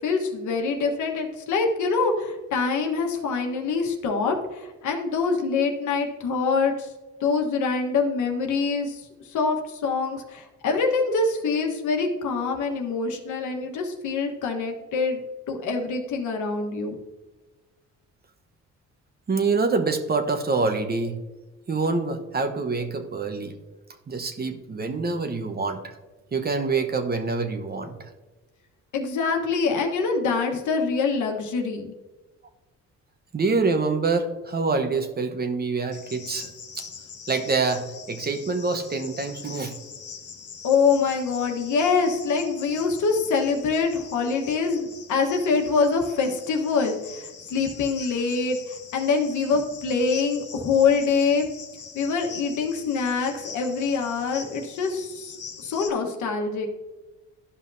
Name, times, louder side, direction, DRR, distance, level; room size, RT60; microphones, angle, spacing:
voice 1, 0.0-6.9 7.2-15.2 15.5-17.0 28.9-31.9 40.6-51.4 51.9-55.3 55.6-56.7, left 4 dB, 75° left, 3 dB, 1.3 m, -25 dB
voice 2, 19.3-21.2 21.7-23.5 24.1-25.9 26.3-28.1 33.3-36.5 36.8-36.9 37.3-39.8, right 4 dB, 30° right, 7 dB, 1.0 m, -26 dB
Cricket, 35.9-55.9, left 6 dB, 50° left, 1.3 m, -43 dB
12.5 x 5.6 x 2.7 m, 1.2 s
cardioid pair, 90°, 30 cm